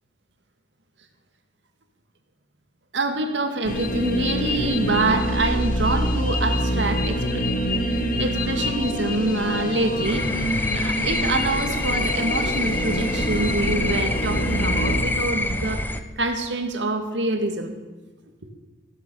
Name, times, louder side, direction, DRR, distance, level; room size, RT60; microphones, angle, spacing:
voice 1, 2.9-7.5 8.0-10.4 10.7-17.7 18.4-18.5, right 2 dB, 70° right, 6 dB, 2.1 m, -26 dB
sound 1, 3.6-15.0, equal, 50° left, 1.6 m, -25 dB
sound 2, 10.0-16.0, left 2 dB, 10° left, 0.9 m, -26 dB
15.0 x 12.0 x 7.0 m, 1.3 s
head